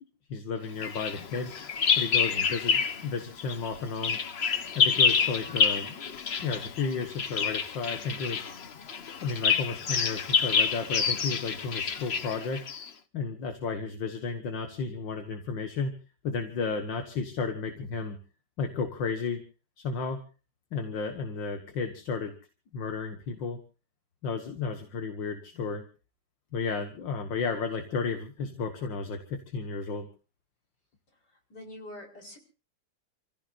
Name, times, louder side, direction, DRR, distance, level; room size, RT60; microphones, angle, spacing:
voice 1, 0.3-1.5 2.0-4.2 4.8-6.1 6.4-8.4 9.2-12.6 13.1-15.9 16.2-18.2 18.6-19.4 19.8-20.2 20.7-22.3 22.7-23.6 24.2-25.8 26.5-30.1, left 4 dB, 80° left, 5 dB, 2.3 m, -33 dB
Bird vocalization bird call bird song, 0.8-3.1 3.4-12.9, left 6 dB, 45° left, 0.9 m, -28 dB
voice 2, 31.5-32.4, left 1 dB, 60° left, 0 dB, 5.4 m, -44 dB
29.0 x 16.0 x 2.5 m, 0.36 s
omnidirectional pair, 2.0 m